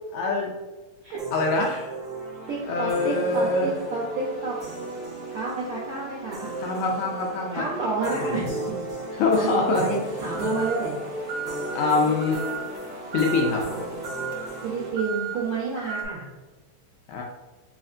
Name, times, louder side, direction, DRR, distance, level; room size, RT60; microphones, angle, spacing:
voice 1, 0.1-0.5 1.3-1.9 2.6-3.7 6.6-7.6 8.2-8.5 9.2-9.9 11.7-12.5 13.1-13.6 17.1-17.2, left 3 dB, 80° left, 0 dB, 1.7 m, -24 dB
sound 1, 1.2-14.9, right 1 dB, 40° right, 1.0 m, -34 dB
voice 2, 2.5-4.6 5.3-6.5 7.5-8.5 9.1-10.9 14.6-16.2, right 4 dB, 70° right, -8 dB, 1.3 m, -30 dB
sound 2, 10.0-16.0, right 6 dB, 90° right, 1.4 m, -36 dB
4.3 x 4.1 x 2.4 m, 1.3 s
omnidirectional pair, 3.7 m